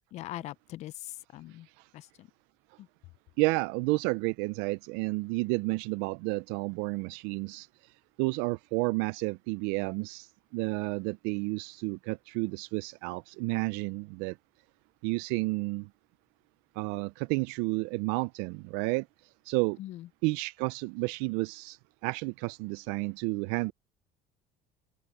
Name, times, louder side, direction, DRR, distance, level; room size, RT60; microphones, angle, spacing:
voice 1, 0.1-1.7 1.9-2.3 2.8-2.9 19.8-20.1, left 15 dB, 45° left, 0.4 m, -42 dB
voice 2, 3.4-7.7 8.2-14.4 15.0-15.9 16.8-19.1 19.5-19.8 20.2-23.7, right 25 dB, 85° right, 0.4 m, -31 dB
cardioid pair, 160°, 16 cm